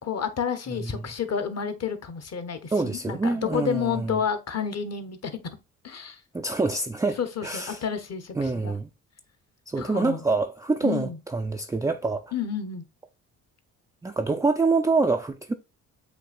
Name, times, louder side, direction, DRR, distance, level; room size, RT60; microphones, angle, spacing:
voice 1, 0.0-5.4 5.8-6.2 7.2-8.7 9.8-10.2 10.8-11.2 12.3-12.8, left 7 dB, 40° left, 1.0 m, -30 dB
voice 2, 0.7-1.0 2.7-4.2 6.3-7.8 8.4-8.9 9.7-12.3 14.0-15.5, right 3 dB, 10° right, 0.3 m, -26 dB
7.8 x 2.7 x 2.4 m
hypercardioid pair, 55°, 38 cm